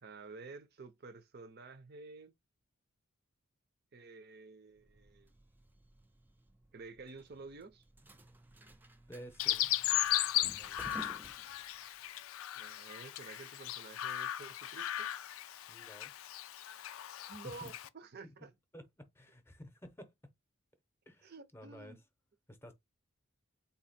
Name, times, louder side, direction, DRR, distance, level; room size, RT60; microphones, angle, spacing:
voice 1, 0.0-2.3 3.9-5.3 6.7-7.8 12.6-15.1 17.3-18.5 21.2-22.0, right 4 dB, 50° right, 0.6 m, -51 dB
sound 1, 4.8-12.1, right 1 dB, 10° right, 0.3 m, -55 dB
voice 2, 9.1-9.7 10.2-11.3 15.7-16.1 17.4-17.6 18.2-18.3 18.7-20.1 21.1-22.0 22.5-22.7, equal, 10° left, 0.7 m, -53 dB
Chirp tweet, 9.4-17.9, left 13 dB, 80° left, 0.4 m, -36 dB
4.0 x 2.8 x 4.2 m
head